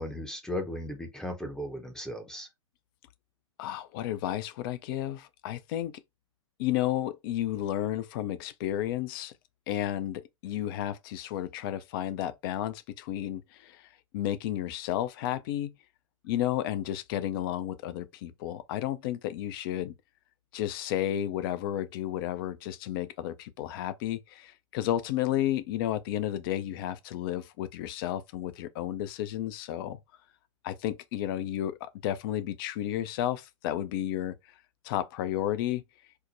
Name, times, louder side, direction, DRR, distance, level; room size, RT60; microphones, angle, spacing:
voice 1, 0.0-2.5, left 1 dB, 5° left, 0.7 m, -36 dB
voice 2, 3.6-5.9 6.6-9.3 9.7-15.7 16.2-19.9 20.5-30.0 30.6-34.4 34.8-35.8, left 12 dB, 45° left, 0.5 m, -32 dB
4.4 x 2.1 x 2.6 m
hypercardioid pair, 110°, 17 cm